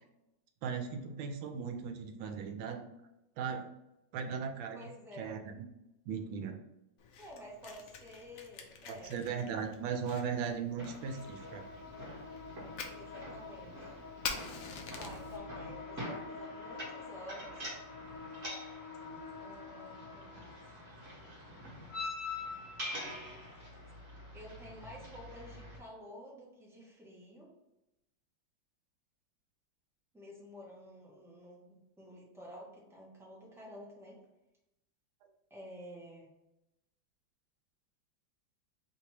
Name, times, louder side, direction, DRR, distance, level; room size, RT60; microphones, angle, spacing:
voice 1, 0.6-2.8 3.4-3.7 4.1-4.8 5.2-5.6 6.1-6.6 9.0-11.6, right 6 dB, 90° right, 5 dB, 1.3 m, -37 dB
voice 2, 4.7-5.4 7.2-9.2 12.9-14.0 14.9-17.7 19.4-20.6 24.3-27.5 30.1-34.2 35.5-36.3, equal, 5° right, -4 dB, 0.5 m, -51 dB
Fire, 7.0-15.4, left 5 dB, 80° left, 0.7 m, -47 dB
sound 1, 10.8-25.8, left 1 dB, 35° right, 1.6 m, -45 dB
sound 2, 11.0-24.0, left 5 dB, 65° left, 1.2 m, -49 dB
3.4 x 2.8 x 4.6 m, 0.91 s
omnidirectional pair, 2.1 m